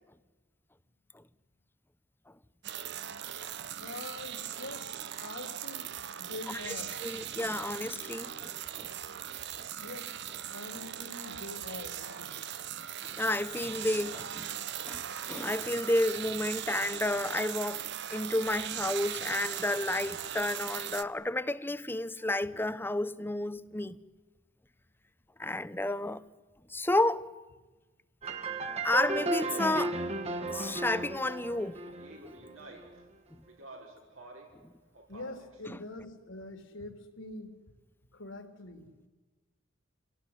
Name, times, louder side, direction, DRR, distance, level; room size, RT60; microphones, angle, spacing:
sound 1, 2.6-21.0, right 10 dB, 60° right, 0.9 m, -39 dB
voice 1, 3.8-7.1 9.8-10.1 10.5-12.4 22.2-22.3 35.1-37.5 38.1-38.9, left 2 dB, 70° left, 3.5 m, -44 dB
voice 2, 7.0-8.5 8.8-8.9 13.0-14.5 14.9-15.0 15.3-24.0 25.4-26.2 26.7-27.3 28.8-30.0 30.5-31.8 33.3-33.4 34.6-34.7 35.7-35.8, left 1 dB, 10° left, 0.7 m, -31 dB
sound 2, 28.2-32.8, right 2 dB, 30° right, 1.6 m, -35 dB
Speech, 28.8-31.0 31.8-33.0 33.5-34.6 34.9-35.6, right 2 dB, 85° right, 5.8 m, -48 dB
27.5 x 18.0 x 9.7 m
head